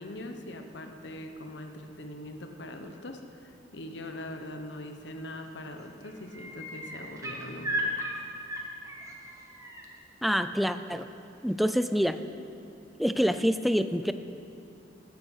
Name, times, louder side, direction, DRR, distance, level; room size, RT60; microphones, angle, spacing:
voice 1, 0.0-8.1, left 1 dB, 70° left, 5 dB, 1.0 m, -42 dB
sound 1, 5.1-5.5 5.8-9.8 11.5-11.6, right 1 dB, 20° right, 1.3 m, -36 dB
voice 2, 10.2-11.1 11.4-12.2 13.0-14.1, equal, ahead, 10 dB, 0.4 m, -26 dB
13.5 x 9.6 x 6.5 m, 2.7 s
head